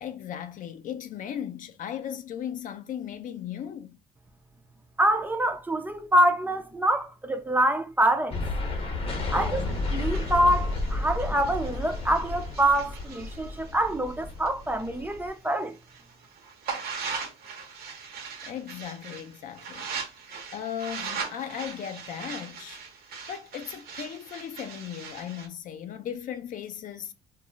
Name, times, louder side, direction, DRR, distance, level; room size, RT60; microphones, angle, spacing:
voice 1, 0.0-4.0 9.4-9.8 18.4-19.9 20.5-22.8 23.3-27.1, left 9 dB, 50° left, 0.4 m, -37 dB
voice 2, 5.0-8.4 9.3-9.7 9.9-15.8, right 1 dB, 10° right, 0.4 m, -25 dB
sound 1, 8.3-15.3, left 2 dB, 35° left, 0.8 m, -32 dB
sound 2, 9.6-15.2 15.6-25.5, right 5 dB, 65° right, 0.8 m, -40 dB
2.3 x 2.0 x 3.7 m
cardioid pair, 110°, 17 cm